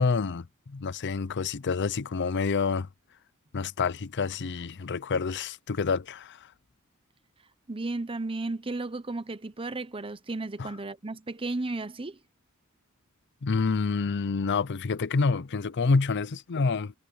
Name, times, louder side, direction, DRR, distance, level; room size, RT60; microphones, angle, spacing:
voice 1, 0.0-2.9 3.5-6.4 10.6-10.7 13.4-16.9, left 4 dB, 55° left, 0.6 m, -28 dB
voice 2, 7.7-12.2, right 2 dB, 25° right, 0.9 m, -34 dB
head